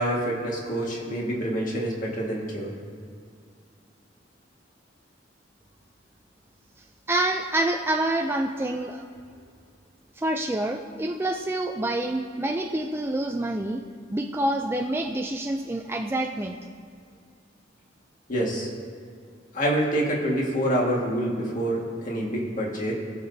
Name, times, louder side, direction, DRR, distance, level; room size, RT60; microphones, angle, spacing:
voice 1, 0.0-2.7 18.3-18.7 19.5-22.9, right 1 dB, 45° left, -2 dB, 1.8 m, -26 dB
voice 2, 7.1-9.0 10.2-13.8 14.1-16.6, right 1 dB, 10° right, 3 dB, 0.4 m, -27 dB
19.5 x 6.9 x 2.7 m, 2.3 s
head